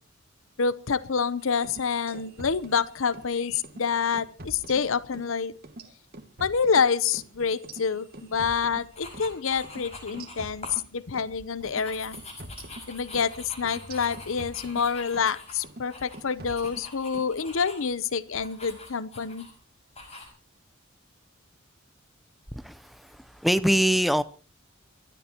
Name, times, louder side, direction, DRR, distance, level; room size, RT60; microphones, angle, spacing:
voice 1, 0.6-5.5 6.4-12.2 12.9-19.5, left 6 dB, 70° left, 0.7 m, -27 dB
sound 1, 1.5-3.3 3.6-3.8 4.1-5.3 5.6-9.3 9.6-9.8 10.1-11.3 11.6-11.8 12.1-15.3 15.6-15.9 16.1-17.3, right 1 dB, 45° right, 1.8 m, -45 dB
sound 2, 8.9-10.8 11.2-17.9 18.3-19.5 19.9-20.3, left 2 dB, 30° left, 5.7 m, -45 dB
voice 2, 22.5-24.2, equal, ahead, 0.6 m, -24 dB
28.5 x 13.0 x 2.9 m
head